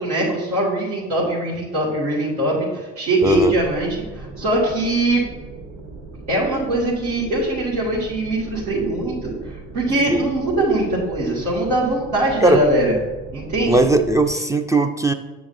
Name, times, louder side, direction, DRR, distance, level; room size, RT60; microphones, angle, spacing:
voice 1, 0.0-5.2 6.3-13.0 13.3-13.8, right 1 dB, 85° right, -9 dB, 2.1 m, -22 dB
voice 2, 3.2-3.5 10.1-10.3 12.4-12.6 13.7-15.1, right 1 dB, 10° right, 7 dB, 0.4 m, -18 dB
sound 1, 3.2-14.3, right 3 dB, 50° right, 1.8 m, -38 dB
7.2 x 6.9 x 2.7 m, 1.2 s
hypercardioid pair, 70°, 39 cm